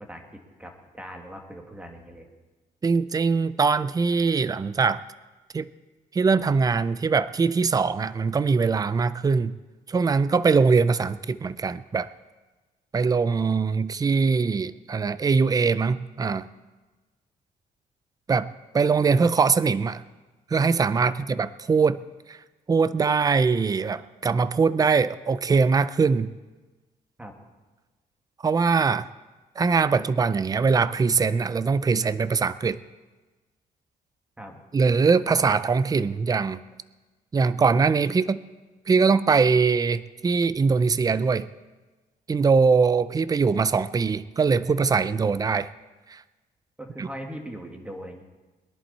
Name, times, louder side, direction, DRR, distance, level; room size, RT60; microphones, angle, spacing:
voice 1, 0.6-2.3 21.0-21.1 27.2-27.3 34.4-34.6 46.8-48.2, equal, 10° right, 2 dB, 2.2 m, -40 dB
voice 2, 2.8-5.0 5.5-5.7 6.1-9.6 9.9-12.1 12.9-16.5 18.3-18.5 18.7-20.0 20.5-22.0 22.3-22.4 22.7-26.3 28.4-29.1 29.6-32.8 34.7-36.6 37.3-38.4 38.9-41.5 42.3-45.7 46.1-46.2 47.0-47.1, right 5 dB, 25° right, 15 dB, 0.5 m, -22 dB
22.0 x 11.0 x 4.3 m, 1.2 s
cardioid pair, 110°, 16 cm